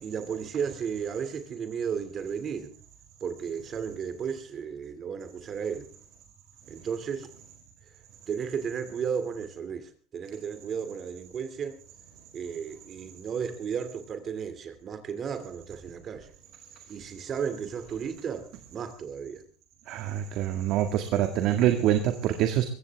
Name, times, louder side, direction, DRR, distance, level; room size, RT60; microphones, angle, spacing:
voice 1, 0.0-2.7 3.2-5.9 6.7-7.3 8.3-11.8 12.3-16.3 16.9-18.5 18.7-19.4, right 7 dB, 40° right, 10 dB, 2.6 m, -34 dB
voice 2, 19.9-22.7, right 11 dB, 60° right, 6 dB, 1.9 m, -25 dB
22.5 x 15.5 x 3.5 m, 0.40 s
supercardioid pair, 115°, 0 cm